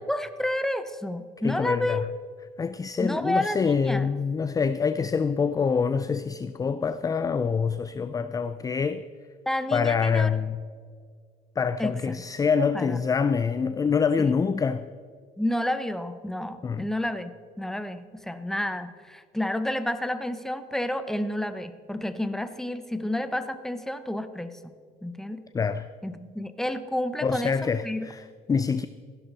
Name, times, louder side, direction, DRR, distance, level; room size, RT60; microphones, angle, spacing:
voice 1, 0.0-2.0 3.0-4.1 9.5-10.3 11.8-12.2 12.7-13.0 14.2-14.4 15.4-24.6 25.0-25.4 26.0-28.1, left 1 dB, 5° left, 0.8 m, -30 dB
voice 2, 1.4-2.1 2.6-9.0 9.7-10.6 11.6-14.9 16.6-16.9 25.5-25.9 27.2-28.9, left 5 dB, 20° left, 0.4 m, -25 dB
15.5 x 11.5 x 4.1 m
cardioid pair, 110°, 17 cm